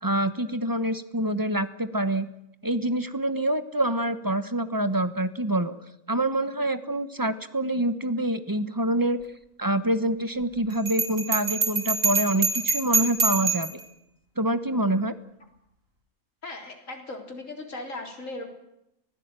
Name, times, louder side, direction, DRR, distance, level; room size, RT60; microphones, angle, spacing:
voice 1, 0.0-2.3 2.6-5.7 6.1-9.2 9.6-13.7 14.4-15.1, right 1 dB, 15° right, 12 dB, 1.0 m, -26 dB
Bell, 10.9-13.8, right 3 dB, 65° right, 3.1 m, -25 dB
voice 2, 16.4-18.5, left 2 dB, 60° left, 3 dB, 4.2 m, -38 dB
25.0 x 16.0 x 8.9 m, 0.82 s
omnidirectional pair, 1.5 m